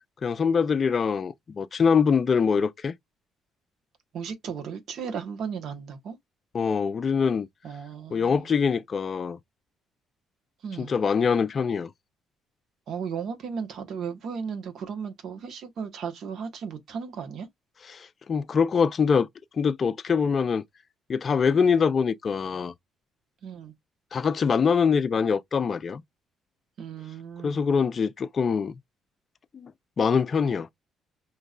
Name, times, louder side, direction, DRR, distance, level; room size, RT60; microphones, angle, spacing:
voice 1, 0.2-2.9 6.5-7.5 8.1-9.4 10.8-11.9 17.9-19.3 19.6-20.6 21.1-22.7 24.1-26.0 27.4-28.8 29.5-29.7 30.0-30.7, left 6 dB, 45° left, 0.5 m, -24 dB
voice 2, 4.1-6.2 7.6-8.5 10.6-10.9 12.9-17.5 23.4-23.7 26.8-27.6, right 6 dB, 65° right, 1.2 m, -35 dB
5.0 x 3.0 x 2.4 m
cardioid pair, 90°, 0 cm